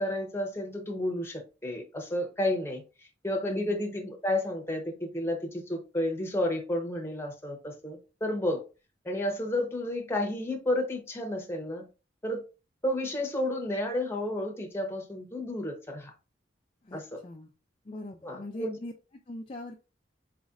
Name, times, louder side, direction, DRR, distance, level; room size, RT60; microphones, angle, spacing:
voice 1, 0.0-2.8 3.2-8.6 9.0-11.9 12.2-12.4 12.8-16.1 16.9-17.2 18.2-18.8, left 1 dB, 15° left, 0.9 m, -31 dB
voice 2, 3.5-3.9 16.8-17.5 17.8-18.9 19.3-19.8, left 1 dB, 30° left, 0.4 m, -42 dB
4.2 x 4.1 x 2.4 m
head